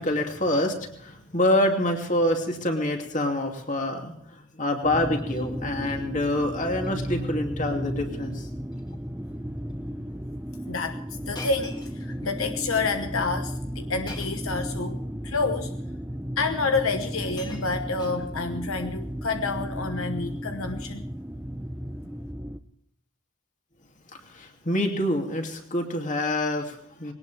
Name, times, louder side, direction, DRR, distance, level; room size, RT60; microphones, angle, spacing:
voice 1, 0.0-8.5 24.2-27.1, left 1 dB, 35° left, 3 dB, 2.7 m, -26 dB
sound 1, 4.8-22.6, equal, 10° right, 0.7 m, -34 dB
Shatter, 5.0-5.5 5.8-6.3 6.6-6.9 7.2-7.3 8.1-8.4 8.7-9.0 9.7-9.8 11.3-12.5 14.1-14.6 15.6-15.7 16.7-16.8 17.1-18.6 19.5-19.8, left 2 dB, 20° left, 2.0 m, -45 dB
voice 2, 10.7-15.0 15.2-15.7 16.4-21.1, left 4 dB, 70° left, 7 dB, 1.1 m, -29 dB
21.0 x 18.5 x 3.5 m, 0.70 s
head